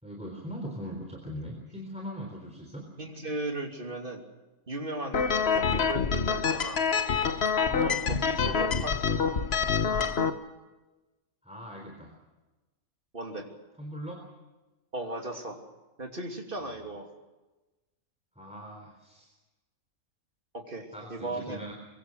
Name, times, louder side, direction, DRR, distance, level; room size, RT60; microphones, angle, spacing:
voice 1, 0.0-2.9 7.7-8.0 9.8-10.2 11.4-12.2 13.8-14.2 18.4-19.3 20.9-21.7, equal, 5° right, 1 dB, 3.8 m, -41 dB
voice 2, 3.0-4.2 4.7-5.2 5.5-7.1 7.8-9.3 13.1-13.5 14.9-15.6 16.0-17.1 20.5-21.6, right 2 dB, 40° right, 3 dB, 3.1 m, -37 dB
sound 1, 5.1-10.3, left 6 dB, 50° left, 1.3 m, -26 dB
23.5 x 23.5 x 6.4 m, 1.1 s
omnidirectional pair, 1.4 m